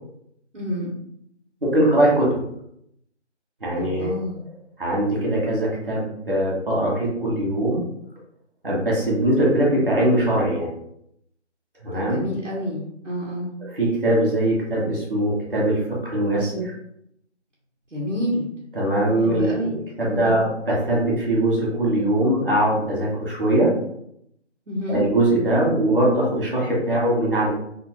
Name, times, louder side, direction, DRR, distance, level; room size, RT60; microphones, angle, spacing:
voice 1, 0.5-0.9 3.8-4.4 11.9-13.5 17.9-18.5 19.2-19.8 20.1-20.4 24.7-25.0, left 1 dB, 90° right, -5 dB, 1.5 m, -28 dB
voice 2, 1.6-2.4 3.6-4.1 4.8-7.8 8.6-10.7 11.8-12.2 13.7-16.7 18.8-19.6 20.0-23.8 24.9-27.5, right 1 dB, 50° right, -4 dB, 1.4 m, -21 dB
3.6 x 2.8 x 3.1 m, 0.74 s
figure-of-eight pair, 170°, 36 cm